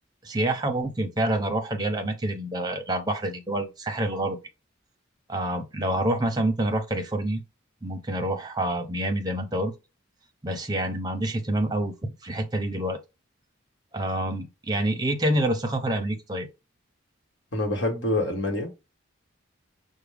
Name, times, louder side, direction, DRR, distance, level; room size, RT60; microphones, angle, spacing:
voice 1, 0.2-4.4 5.3-7.4 7.8-9.7 10.4-13.0 13.9-16.5, right 1 dB, 20° right, 0.7 m, -27 dB
voice 2, 17.5-18.7, left 1 dB, 60° left, 1.4 m, -26 dB
6.0 x 2.2 x 3.4 m
head